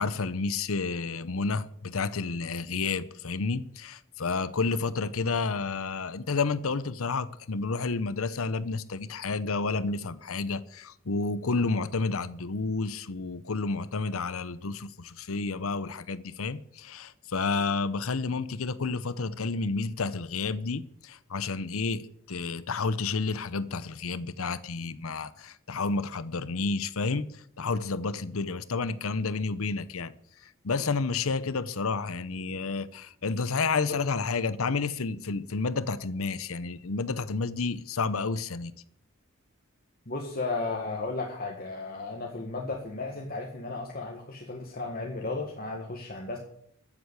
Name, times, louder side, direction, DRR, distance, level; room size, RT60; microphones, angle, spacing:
voice 1, 0.0-30.1 30.4-38.7, left 4 dB, 80° left, 0.8 m, -30 dB
voice 2, 40.1-46.4, left 3 dB, 45° left, 1.7 m, -34 dB
13.5 x 8.1 x 8.2 m
head